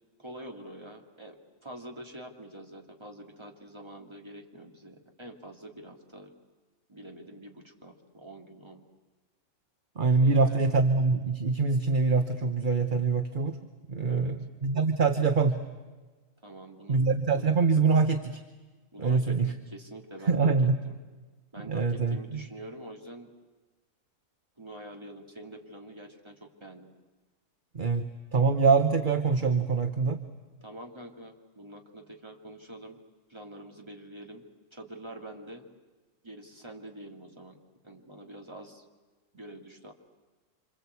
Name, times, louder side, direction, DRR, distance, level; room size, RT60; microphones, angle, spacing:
voice 1, 0.2-6.3 6.9-8.9 10.2-10.7 14.1-14.3 16.4-17.0 18.9-21.0 21.5-23.3 24.6-26.9 30.6-33.0 33.3-34.4 34.7-35.6 36.2-37.6 37.8-38.8 39.3-39.9, right 1 dB, 20° right, 1 dB, 2.7 m, -46 dB
voice 2, 10.0-13.6 13.9-15.6 16.9-18.4 19.0-19.5 20.3-20.8 21.7-22.4 27.7-30.2, right 4 dB, 40° right, 7 dB, 1.2 m, -24 dB
27.0 x 26.5 x 8.3 m, 1.3 s
omnidirectional pair, 1.5 m